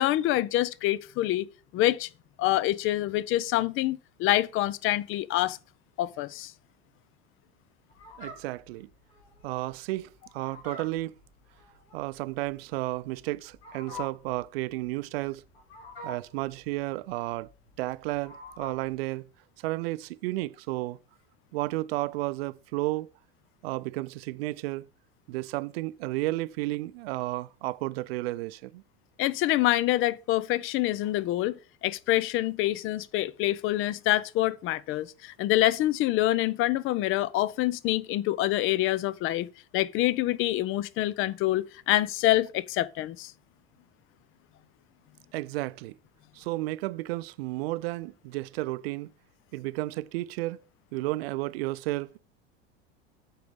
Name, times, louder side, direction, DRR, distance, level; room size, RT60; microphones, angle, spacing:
voice 1, 0.0-1.5 1.7-2.1 2.4-5.6 6.0-6.5 29.2-31.5 31.8-39.5 39.7-43.3, left 15 dB, 40° left, 0.5 m, -26 dB
Fowl, 7.9-19.0, left 2 dB, 75° left, 3.7 m, -46 dB
voice 2, 8.2-8.9 9.4-11.2 11.9-15.4 16.0-17.5 17.8-19.2 19.6-21.0 21.5-23.1 23.6-24.8 25.3-28.8 45.3-46.0 46.3-49.1 49.5-50.6 50.9-52.2, right 19 dB, 65° right, 0.5 m, -32 dB
7.8 x 4.8 x 5.1 m
hypercardioid pair, 85°, 33 cm